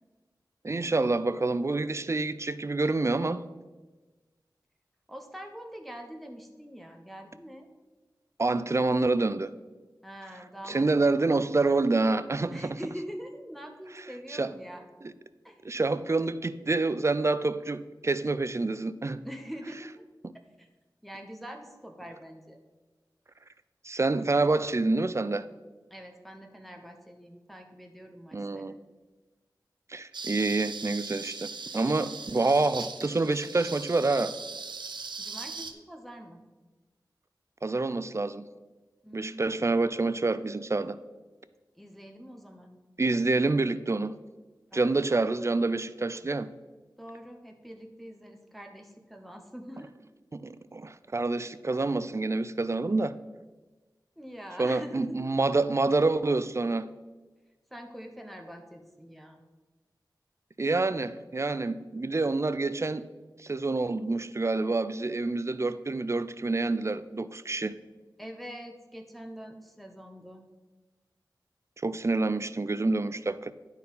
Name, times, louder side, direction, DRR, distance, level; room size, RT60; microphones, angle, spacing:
voice 1, 0.6-3.4 8.4-9.5 10.7-12.8 14.3-14.5 15.6-19.2 23.8-25.4 28.3-28.8 29.9-34.3 37.6-38.4 39.1-41.0 43.0-44.1 44.7-46.5 50.3-53.2 54.6-56.9 60.6-63.1 63.4-67.7 71.8-73.5, right 3 dB, 40° right, 0.4 m, -27 dB
voice 2, 5.1-7.7 10.0-11.3 12.5-14.8 15.4-15.6 19.2-20.0 20.6-20.7 21.0-22.6 25.9-28.8 35.2-36.4 39.0-39.7 41.8-42.8 44.7-45.0 47.0-50.0 54.2-55.3 57.7-59.4 68.2-70.4, equal, ahead, 0.9 m, -44 dB
sound 1, 30.1-35.7, right 4 dB, 85° right, 0.6 m, -39 dB
11.0 x 4.5 x 5.5 m
wide cardioid pair, 60°, 8 cm